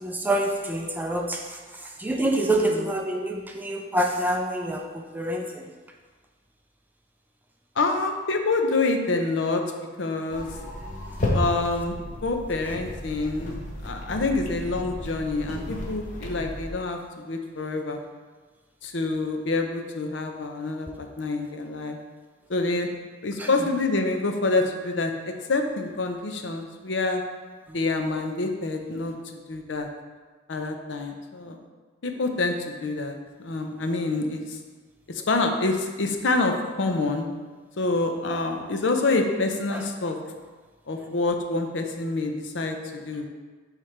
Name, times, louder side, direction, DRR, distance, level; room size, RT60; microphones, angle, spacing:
voice 1, 0.0-5.7 23.4-23.5 39.7-39.9, right 1 dB, 10° right, 2 dB, 0.4 m, -27 dB
voice 2, 7.8-9.6 10.0-10.5 11.3-18.0 18.8-22.0 22.5-22.9 23.2-27.2 27.7-29.9 30.5-31.6 32.0-34.6 35.1-37.3 37.8-40.2 40.9-42.8 43.0-43.3, left 3 dB, 65° left, 4 dB, 0.6 m, -27 dB
sound 1, 10.3-16.7, left 1 dB, 40° left, 0.9 m, -33 dB
9.3 x 3.2 x 3.3 m, 1.4 s
head